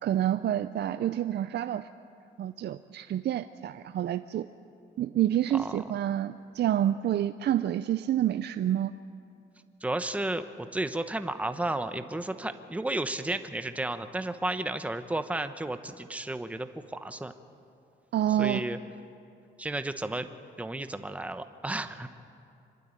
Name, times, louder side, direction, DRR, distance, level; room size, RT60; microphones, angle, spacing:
voice 1, 0.0-1.9 2.4-4.5 5.0-8.9 18.1-18.6, right 11 dB, 60° right, 12 dB, 0.5 m, -28 dB
voice 2, 9.8-17.3 18.4-18.8 19.6-20.3 20.6-22.1, right 2 dB, 5° right, 9 dB, 0.9 m, -33 dB
25.5 x 12.0 x 9.7 m, 2.6 s
cardioid pair, 90°, 20 cm